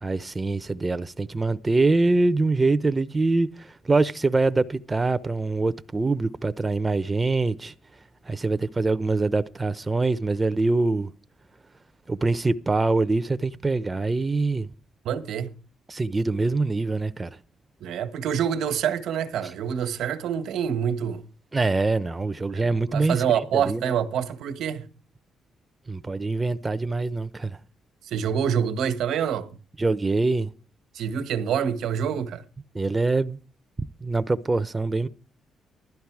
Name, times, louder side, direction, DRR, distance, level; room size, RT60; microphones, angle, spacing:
voice 1, 0.0-7.7 8.2-11.1 12.1-14.7 15.9-17.4 21.5-23.2 23.5-23.9 25.9-27.6 29.8-30.5 32.7-33.4 34.0-35.1, right 3 dB, 25° right, 0.8 m, -24 dB
voice 2, 15.0-15.5 17.8-21.2 22.5-24.9 28.0-29.5 30.9-32.4, right 8 dB, 75° right, 1.4 m, -26 dB
15.5 x 12.0 x 4.8 m
supercardioid pair, 55°, 0 cm